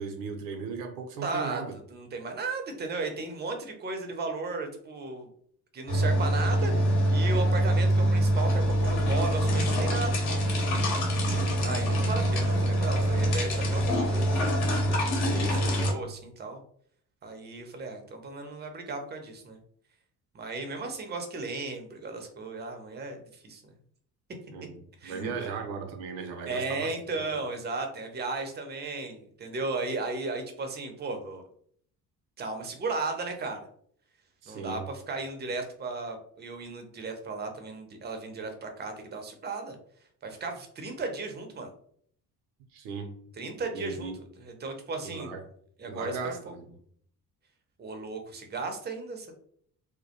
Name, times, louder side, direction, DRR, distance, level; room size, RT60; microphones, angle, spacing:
voice 1, 0.0-1.7 11.2-11.5 15.2-16.0 24.5-26.9 34.4-34.9 42.7-43.1 43.7-44.1 45.0-45.4 45.9-46.7, right 5 dB, 65° right, 4 dB, 0.6 m, -37 dB
voice 2, 1.2-1.6 1.9-5.3 5.7-6.7 7.1-10.2 11.6-14.6 15.2-16.6 17.2-19.6 20.3-23.6 25.0-25.5 26.5-31.4 32.4-33.6 34.5-39.8 40.2-41.7 43.4-45.3 45.8-46.5 47.8-49.4, right 3 dB, 20° right, 5 dB, 0.6 m, -35 dB
sound 1, 5.9-15.9, equal, 55° left, 0.9 m, -25 dB
2.2 x 2.1 x 2.8 m, 0.62 s
figure-of-eight pair, 50°, 48 cm